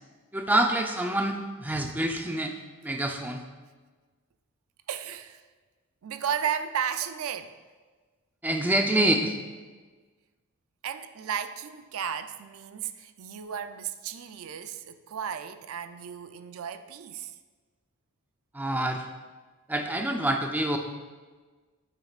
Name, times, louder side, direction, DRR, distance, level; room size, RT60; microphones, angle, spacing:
voice 1, 0.3-2.5 2.8-3.4 8.4-9.3 18.5-19.1 19.7-20.8, right 1 dB, 10° right, 4 dB, 0.5 m, -26 dB
voice 2, 4.9-5.4 6.0-7.5 10.8-17.3, right 8 dB, 70° right, 10 dB, 0.4 m, -34 dB
9.1 x 8.6 x 2.4 m, 1.4 s
head